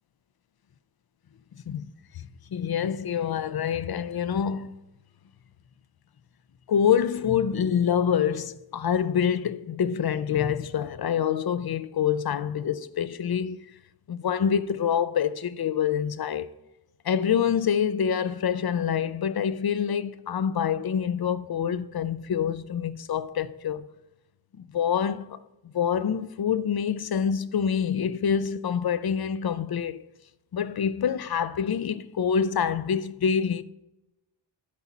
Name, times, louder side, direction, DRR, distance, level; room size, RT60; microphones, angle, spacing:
voice 1, 2.1-4.7 6.7-13.6 14.1-16.5 17.0-23.9 24.6-30.0 30.5-33.6, left 8 dB, 55° left, 0.6 m, -26 dB
11.0 x 4.2 x 7.2 m
wide cardioid pair, 85°, 44 cm